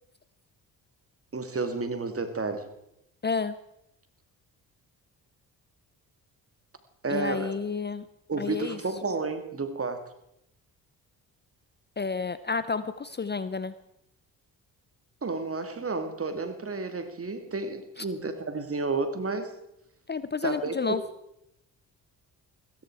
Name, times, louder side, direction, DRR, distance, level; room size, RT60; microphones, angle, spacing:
voice 1, 1.3-2.7 7.0-7.5 8.3-10.0 15.2-19.5 20.4-20.7, right 3 dB, 35° right, 8 dB, 2.3 m, -31 dB
voice 2, 3.2-3.6 7.1-8.1 8.4-8.8 12.0-13.7 18.0-18.1 20.1-21.0, left 5 dB, 25° left, 14 dB, 0.7 m, -30 dB
15.5 x 14.0 x 4.7 m, 0.81 s
supercardioid pair, 60°, 41 cm